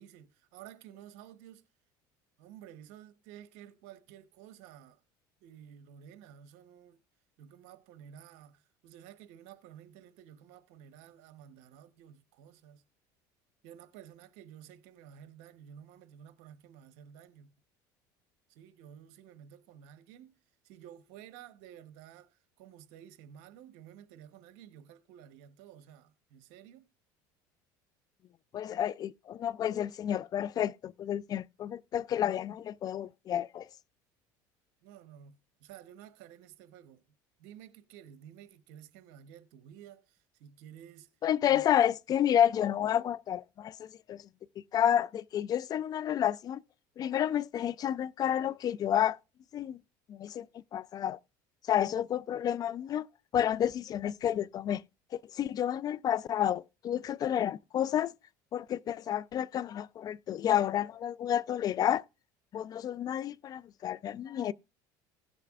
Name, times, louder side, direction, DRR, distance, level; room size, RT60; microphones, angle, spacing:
voice 1, 0.0-1.6 2.4-5.0 5.4-7.0 7.4-12.8 13.6-17.5 18.5-20.4 20.6-26.9 34.8-37.0 37.4-41.1 41.5-41.6, right 10 dB, 75° right, 1.0 m, -53 dB
voice 2, 28.5-33.7 41.2-44.2 44.7-46.6 47.0-49.2 49.5-49.8 50.1-51.2 51.7-53.1 53.3-54.8 55.1-58.1 58.5-62.0 62.5-64.5, left 10 dB, 40° left, 0.4 m, -30 dB
16.5 x 6.7 x 2.4 m
supercardioid pair, 95°, 10 cm